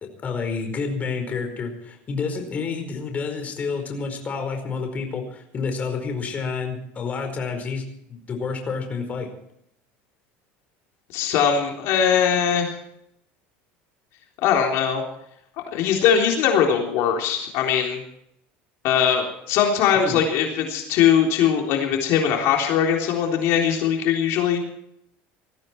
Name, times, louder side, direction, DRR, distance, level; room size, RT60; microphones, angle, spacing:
voice 1, 0.2-9.3 19.9-20.2, left 5 dB, 30° left, 4 dB, 4.7 m, -29 dB
voice 2, 11.1-12.8 14.4-15.0 15.7-18.0 18.8-24.6, left 8 dB, 60° left, 1 dB, 3.6 m, -21 dB
20.0 x 14.5 x 4.6 m, 0.74 s
supercardioid pair, 125°, 5 cm